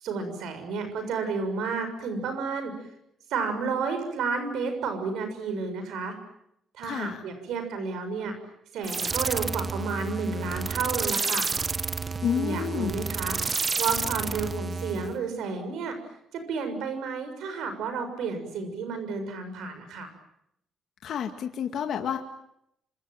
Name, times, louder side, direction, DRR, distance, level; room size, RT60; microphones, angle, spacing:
voice 1, 0.0-2.7 3.3-6.1 6.8-8.4 8.7-11.5 12.3-13.4 13.8-16.0 16.3-20.1, right 4 dB, 80° right, 7 dB, 6.7 m, -31 dB
voice 2, 6.8-7.2 12.2-12.9 21.0-22.2, left 8 dB, 65° left, 4 dB, 2.1 m, -29 dB
sound 1, 8.8-15.2, right 4 dB, 35° right, 1.0 m, -30 dB
26.5 x 26.0 x 7.7 m, 0.77 s
cardioid pair, 90°, 0 cm